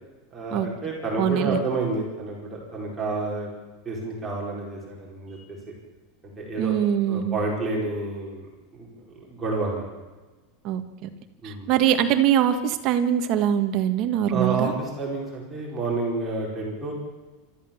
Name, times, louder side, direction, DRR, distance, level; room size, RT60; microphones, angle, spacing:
voice 1, 0.3-3.5 3.8-5.4 6.4-6.7 7.1-8.5 8.7-8.9 9.3-9.8 11.4-11.7 14.3-16.9, right 3 dB, 10° right, -4 dB, 4.9 m, -29 dB
voice 2, 1.2-1.6 6.6-7.4 10.6-11.1 11.4-14.7, right 10 dB, 35° right, 7 dB, 1.6 m, -23 dB
27.5 x 13.5 x 7.2 m, 1.2 s
supercardioid pair, 175°, 0 cm